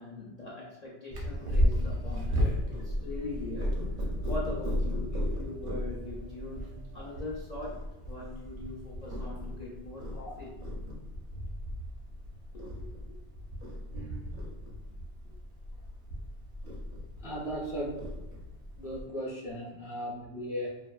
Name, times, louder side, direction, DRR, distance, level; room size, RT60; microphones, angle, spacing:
voice 1, 0.0-3.8 4.2-10.5 12.5-13.2 15.2-15.3, left 2 dB, 55° left, -6 dB, 0.5 m, -42 dB
Purr, 1.1-19.0, equal, 80° right, 1.0 m, -34 dB
voice 2, 13.9-14.5 17.2-18.1 18.8-20.8, equal, 5° right, -6 dB, 0.3 m, -37 dB
2.5 x 2.4 x 2.3 m, 1.0 s
omnidirectional pair, 1.1 m